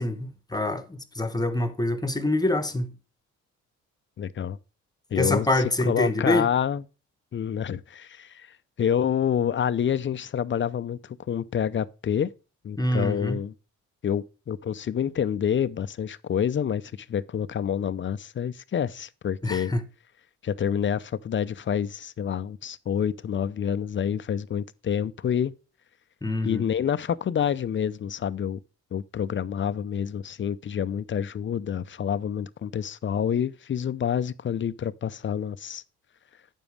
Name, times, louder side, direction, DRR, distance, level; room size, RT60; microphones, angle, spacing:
voice 1, 0.0-2.9 5.1-6.5 12.8-13.4 19.4-19.8 26.2-26.6, left 1 dB, 15° left, 1.1 m, -25 dB
voice 2, 4.2-4.6 5.1-6.8 7.3-12.3 12.6-13.5 14.0-19.7 20.4-25.5 26.4-28.6 28.9-35.8, left 8 dB, 40° left, 0.6 m, -28 dB
9.1 x 7.2 x 3.4 m
cardioid pair, 90°, 30 cm